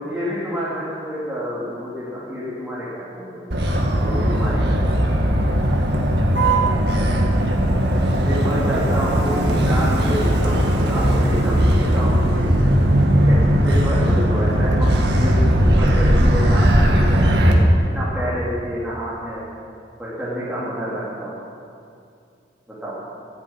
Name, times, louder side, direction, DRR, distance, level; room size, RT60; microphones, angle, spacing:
voice 1, 0.0-3.4 4.0-5.0 8.2-12.3 13.1-17.6 17.9-19.4 20.0-21.3 22.7-23.0, equal, 5° right, -10 dB, 3.0 m, -28 dB
Motor vehicle (road), 3.5-17.5, equal, 60° right, 2.0 m, -18 dB
14.0 x 10.0 x 8.7 m, 2.5 s
head